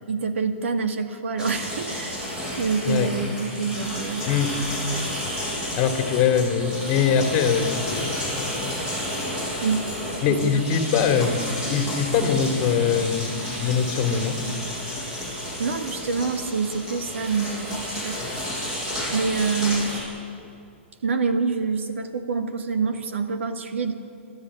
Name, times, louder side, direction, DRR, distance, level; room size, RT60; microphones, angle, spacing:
voice 1, 0.1-2.2 2.6-4.3 9.6-9.9 10.3-10.6 15.6-18.2 19.1-20.0 21.0-23.9, right 5 dB, 80° right, 7 dB, 2.0 m, -26 dB
sound 1, 1.4-20.0, equal, 15° right, 7.3 m, -31 dB
voice 2, 5.8-8.8 10.2-11.4 11.7-13.3 13.6-14.4 18.2-18.4, left 7 dB, 35° left, 6 dB, 2.4 m, -23 dB
30.0 x 12.5 x 9.8 m, 2.5 s
hypercardioid pair, 145°, 7 cm